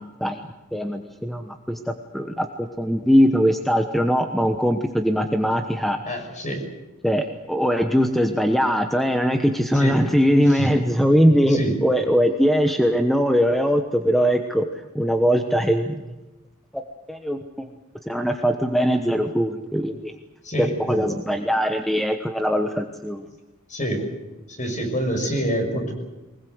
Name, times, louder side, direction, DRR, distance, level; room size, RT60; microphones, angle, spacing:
voice 1, 0.7-1.8 2.1-6.0 7.0-14.7 14.9-16.0 17.1-17.7 18.1-20.1 20.6-23.3, equal, ahead, 5 dB, 1.1 m, -21 dB
voice 2, 6.0-6.6 9.7-10.0 10.5-10.7 11.5-11.8 20.4-21.1 23.7-24.1 24.5-25.9, equal, 35° left, 4 dB, 6.1 m, -26 dB
23.0 x 21.0 x 8.0 m, 1.1 s
head